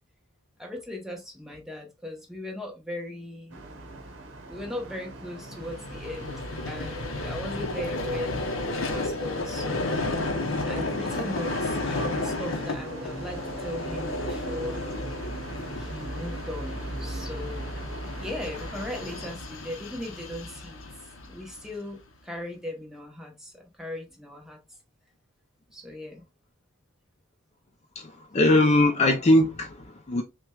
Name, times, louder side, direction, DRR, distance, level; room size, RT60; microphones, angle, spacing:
voice 1, 0.6-3.6 4.5-10.0 10.6-14.8 15.7-17.7 18.2-20.9 21.3-24.6 25.7-26.2, left 1 dB, ahead, 0.8 m, -38 dB
sound 1, 3.5-19.4, right 2 dB, 60° right, 0.9 m, -42 dB
Vehicle, 5.4-21.8, left 2 dB, 65° left, 0.7 m, -32 dB
voice 2, 28.3-30.2, left 1 dB, 30° left, 0.5 m, -21 dB
5.8 x 2.2 x 2.3 m
head